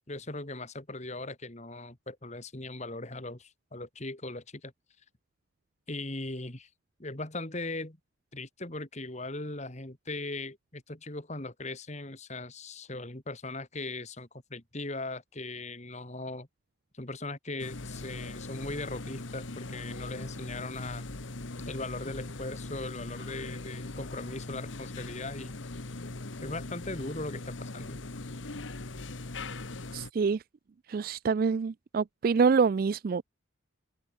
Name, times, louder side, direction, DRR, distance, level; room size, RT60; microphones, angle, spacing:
voice 1, 0.1-4.7 5.9-6.7 7.0-8.0 8.3-16.5 16.9-21.0 21.7-25.5 26.4-28.0, left 2 dB, 35° left, 2.4 m, -39 dB
sound 1, 17.6-30.1, left 2 dB, 65° left, 1.4 m, -40 dB
voice 2, 29.9-30.4 30.9-33.2, right 5 dB, 45° right, 0.3 m, -26 dB
head